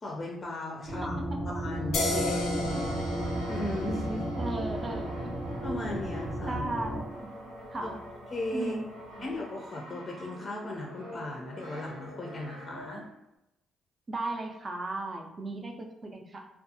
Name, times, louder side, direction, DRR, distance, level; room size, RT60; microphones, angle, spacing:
voice 1, 0.0-1.2 1.4-3.0 3.5-4.3 5.6-6.6 7.8-7.9 8.3-8.7 9.2-13.1, left 1 dB, 30° left, -1 dB, 0.4 m, -37 dB
sound 1, 0.9-7.0, right 1 dB, 50° right, 0.8 m, -34 dB
voice 2, 1.0-1.4 4.4-5.3 6.5-7.3 7.7-8.0 8.5-9.3 14.1-16.5, right 2 dB, 30° right, 3 dB, 0.4 m, -36 dB
sound 2, 1.9-9.2, left 2 dB, 90° left, 0.5 m, -37 dB
Brass instrument, 2.4-13.2, right 1 dB, 90° right, 0.7 m, -47 dB
2.4 x 2.2 x 2.7 m, 0.87 s
cardioid pair, 90°, 0 cm